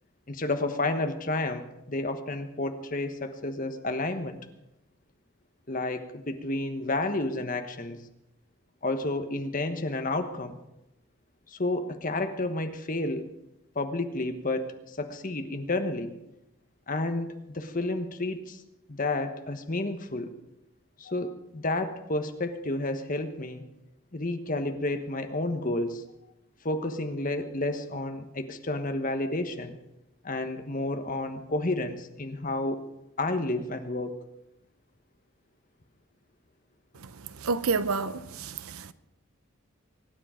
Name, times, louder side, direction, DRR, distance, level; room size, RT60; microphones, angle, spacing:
voice 1, 0.3-4.4 5.7-8.0 8.8-10.6 11.5-13.3 13.7-16.1 16.9-18.6 18.9-20.3 21.0-23.6 24.1-26.0 26.6-29.8 30.2-32.8 33.2-34.1, left 2 dB, 40° left, 1.2 m, -31 dB
voice 2, 37.4-38.9, right 4 dB, 90° right, 0.8 m, -29 dB
24.0 x 9.9 x 5.0 m
head